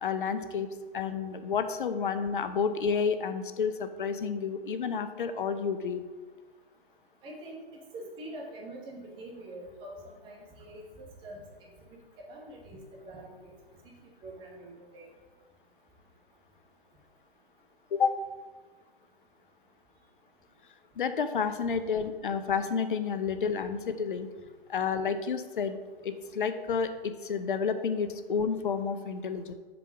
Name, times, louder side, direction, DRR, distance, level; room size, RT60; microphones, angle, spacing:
voice 1, 0.0-6.0 17.9-18.2 21.0-24.3 24.7-25.8 26.0-29.5, left 6 dB, 60° left, 10 dB, 0.7 m, -30 dB
voice 2, 7.2-7.6 7.9-11.7 12.3-12.8 13.0-13.4 14.2-15.1, right 1 dB, 15° right, -2 dB, 1.1 m, -44 dB
5.2 x 4.9 x 5.9 m, 1.3 s
figure-of-eight pair, 125°, 30 cm